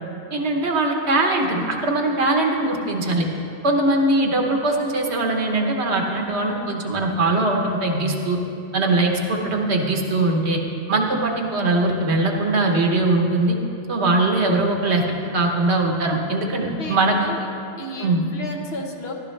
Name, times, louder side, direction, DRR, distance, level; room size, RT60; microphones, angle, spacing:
voice 1, 0.3-3.3 3.6-8.4 8.7-10.6 10.9-13.6 13.9-15.0 15.3-17.1 18.0-18.2, right 2 dB, 70° right, 2 dB, 1.4 m, -21 dB
voice 2, 16.6-17.5 17.8-19.1, left 1 dB, 60° left, 1 dB, 1.3 m, -33 dB
14.5 x 12.0 x 3.2 m, 2.7 s
omnidirectional pair, 1.2 m